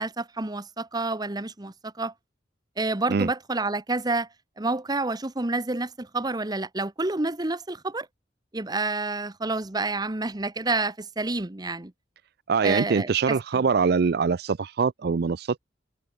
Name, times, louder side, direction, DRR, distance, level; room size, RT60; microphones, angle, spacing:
voice 1, 0.0-2.1 2.8-4.3 4.6-8.1 8.5-11.9 12.6-13.4, right 2 dB, 20° right, 1.0 m, -29 dB
voice 2, 12.5-15.6, right 5 dB, 55° right, 0.4 m, -23 dB
head